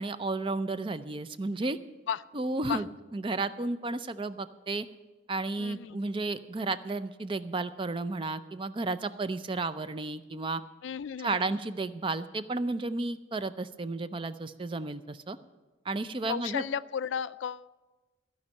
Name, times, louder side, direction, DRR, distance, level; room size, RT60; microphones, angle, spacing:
voice 1, 0.0-1.8 2.3-2.9 3.1-4.9 5.3-10.6 11.2-15.4 15.9-16.6, right 3 dB, 25° right, 13 dB, 0.4 m, -32 dB
voice 2, 5.6-6.0 10.8-11.6 16.3-17.7, left 7 dB, 80° left, 16 dB, 0.4 m, -34 dB
15.0 x 5.3 x 9.5 m, 1.2 s
head